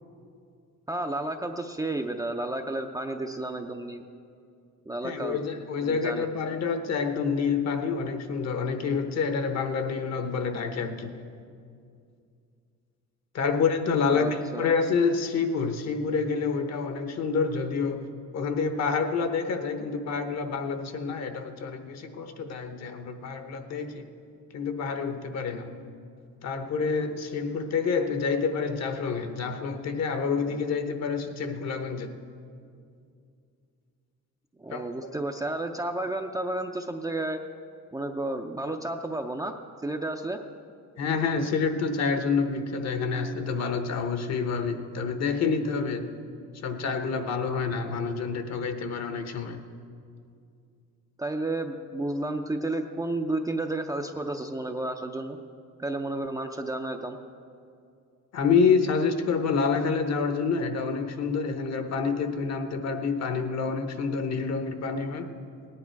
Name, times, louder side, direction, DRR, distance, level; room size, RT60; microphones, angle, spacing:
voice 1, 0.9-4.0 4.9-5.4 5.8-6.3 14.2-14.7 34.6-37.4 37.9-39.6 39.8-40.4 51.2-55.4 55.8-57.2, right 2 dB, 10° right, 4 dB, 0.5 m, -32 dB
voice 2, 5.0-11.1 13.3-18.0 18.3-24.0 24.5-25.7 26.4-32.1 34.7-35.1 41.0-46.1 46.6-49.6 58.3-65.3, left 5 dB, 55° left, 7 dB, 1.1 m, -28 dB
18.0 x 9.8 x 4.6 m, 2.4 s
cardioid pair, 140°, 32 cm